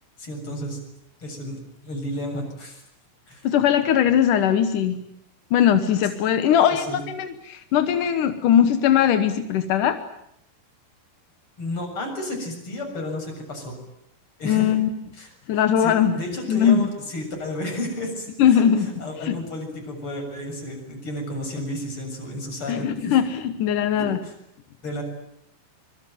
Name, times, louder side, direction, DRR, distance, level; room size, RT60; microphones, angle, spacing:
voice 1, 0.2-0.8 1.2-2.8 3.3-3.5 6.5-7.0 11.6-13.8 14.4-14.7 15.2-15.3 15.8-23.2 24.0-24.3 24.8-25.0, left 1 dB, 30° left, 3 dB, 7.7 m, -32 dB
voice 2, 3.4-5.0 5.5-10.0 14.4-14.9 15.5-16.2 16.5-16.9 18.4-18.9 19.2-19.4 22.7-24.2, left 9 dB, 70° left, 9 dB, 2.0 m, -20 dB
25.5 x 24.0 x 9.3 m, 0.74 s
omnidirectional pair, 5.3 m